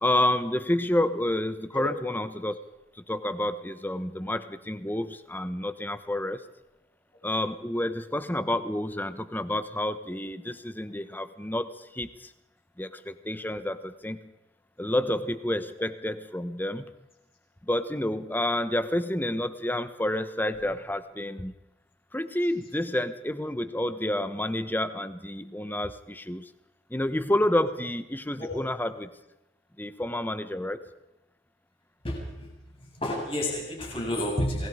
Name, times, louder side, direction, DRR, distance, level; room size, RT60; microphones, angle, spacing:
voice 1, 0.0-2.6 3.1-6.4 7.2-12.3 12.8-14.3 14.8-16.9 17.6-21.5 22.1-26.5 26.9-29.1 29.8-30.8, left 1 dB, 10° left, 12 dB, 1.1 m, -29 dB
voice 2, 32.0-34.7, left 1 dB, 30° left, -1 dB, 7.5 m, -31 dB
28.5 x 20.5 x 5.0 m, 0.92 s
head